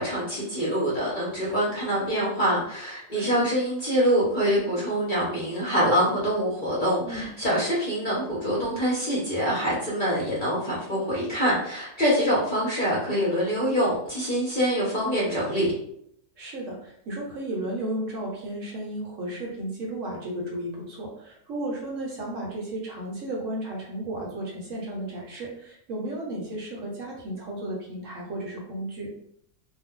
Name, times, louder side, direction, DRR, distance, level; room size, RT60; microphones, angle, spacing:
voice 1, 0.0-15.7, equal, 40° left, -7 dB, 0.8 m, -25 dB
voice 2, 3.1-3.4 7.0-7.3 16.4-29.1, right 1 dB, 60° right, -2 dB, 0.9 m, -34 dB
2.5 x 2.1 x 3.6 m, 0.70 s
omnidirectional pair, 1.6 m